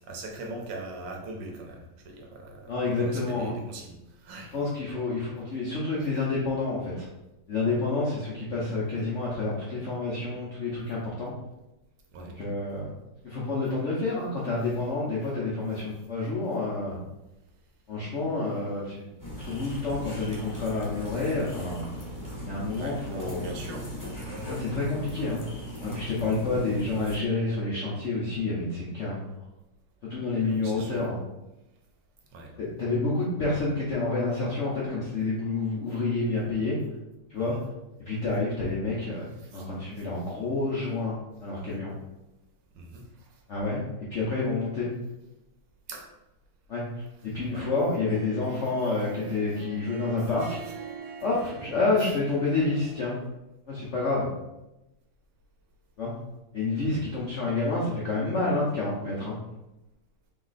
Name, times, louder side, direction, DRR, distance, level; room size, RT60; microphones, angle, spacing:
voice 1, 0.1-4.5 12.1-12.3 22.8-23.9 24.2-24.6 30.5-31.0 32.3-32.5 37.4-37.6 39.4-39.7 42.7-43.4 45.9-46.1 47.5-47.7 49.5-49.6 52.0-52.1 56.8-57.2, right 2 dB, 65° right, 1 dB, 1.3 m, -41 dB
voice 2, 2.7-3.5 4.5-7.1 7.5-11.3 12.2-12.9 13.2-17.0 17.9-19.0 19.4-21.9 22.5-23.5 24.5-25.4 25.8-29.2 30.1-31.2 32.6-36.8 37.3-37.5 38.0-39.3 39.5-41.9 43.5-43.8 44.1-44.9 46.7-46.8 47.3-50.6 51.2-53.2 53.7-54.3 56.0-56.1 56.5-59.4, left 3 dB, 90° left, -6 dB, 0.6 m, -29 dB
sound 1, 19.2-27.2, equal, 25° left, 0.4 m, -38 dB
Harp, 47.9-53.3, right 5 dB, 85° right, 1.5 m, -45 dB
3.5 x 3.1 x 3.9 m, 0.96 s
omnidirectional pair, 2.4 m